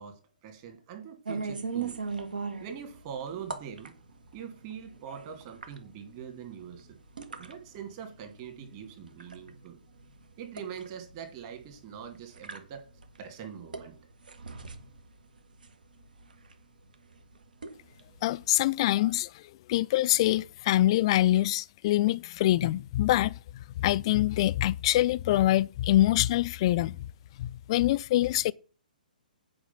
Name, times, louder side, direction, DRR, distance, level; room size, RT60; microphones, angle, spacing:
voice 1, 0.0-2.0 2.6-4.0 4.3-7.0 7.4-9.8 10.4-12.9 13.2-13.9, right 8 dB, 35° right, 2.3 m, -43 dB
sound 1, 1.3-18.8, right 5 dB, 65° right, 1.4 m, -42 dB
voice 2, 18.2-19.4 19.7-27.1 27.4-28.5, left 15 dB, 35° left, 0.4 m, -25 dB
8.5 x 5.1 x 5.7 m
figure-of-eight pair, 125°, 5 cm